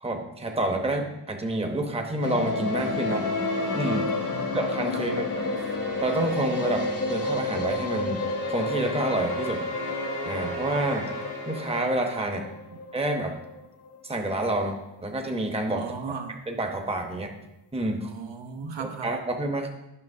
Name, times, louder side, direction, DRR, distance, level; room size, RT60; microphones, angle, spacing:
voice 1, 0.0-3.3 3.7-4.0 4.5-5.3 6.0-8.2 8.5-9.6 10.2-11.1 11.5-12.4 12.9-13.4 14.0-16.2 16.5-17.3 17.7-18.1 18.6-18.7 19.0-19.7, right 1 dB, 15° right, 3 dB, 0.8 m, -28 dB
sound 1, 2.1-12.5, left 1 dB, 80° left, 2.1 m, -34 dB
sound 2, 2.2-14.3 14.6-14.7 15.0-15.1 15.3-15.4, left 3 dB, 35° left, 0.5 m, -32 dB
voice 2, 4.9-5.6 15.7-16.4 18.0-19.1, right 5 dB, 70° right, 4 dB, 0.8 m, -37 dB
9.8 x 5.7 x 2.6 m, 0.89 s
wide cardioid pair, 100°, 45 cm